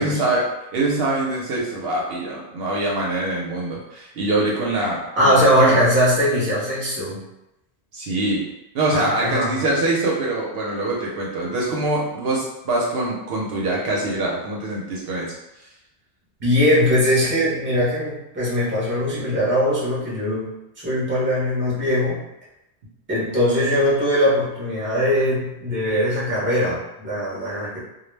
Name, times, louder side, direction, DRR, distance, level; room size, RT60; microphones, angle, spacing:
voice 1, 0.0-5.8 7.9-8.4 8.7-15.7, right 2 dB, 65° right, -4 dB, 0.8 m, -24 dB
voice 2, 5.1-7.2 8.9-9.6 16.4-20.5 20.8-22.2 23.1-27.8, equal, 15° right, -7 dB, 0.6 m, -20 dB
2.2 x 2.0 x 3.1 m, 0.90 s
omnidirectional pair, 1.1 m